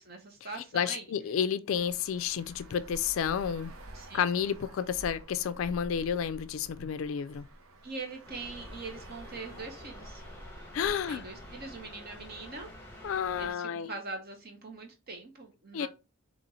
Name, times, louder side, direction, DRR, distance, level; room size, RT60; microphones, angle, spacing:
voice 1, 0.0-1.0 3.9-4.3 7.8-10.2 10.8-12.7 13.4-15.9, right 3 dB, 45° right, 0.9 m, -42 dB
voice 2, 0.7-3.7 4.1-7.5 10.7-11.3 13.0-13.9 15.7-15.9, left 8 dB, 70° left, 0.3 m, -31 dB
Traffic noise roadway noise, 1.7-13.1, right 1 dB, 80° right, 0.9 m, -50 dB
sound 1, 8.2-13.5, left 1 dB, 10° left, 1.1 m, -48 dB
4.2 x 2.9 x 4.0 m
head